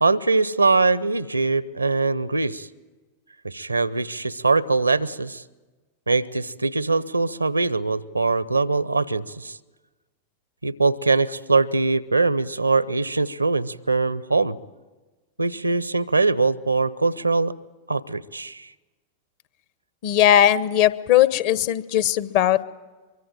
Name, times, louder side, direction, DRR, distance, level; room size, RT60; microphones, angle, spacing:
voice 1, 0.0-2.7 3.4-5.4 6.1-9.6 10.6-14.6 15.4-17.5 17.9-18.7, right 3 dB, 80° right, 20 dB, 0.7 m, -22 dB
voice 2, 20.0-22.6, left 11 dB, 45° left, 16 dB, 1.0 m, -18 dB
24.0 x 23.5 x 9.1 m, 1.2 s
figure-of-eight pair, 90°, 0 cm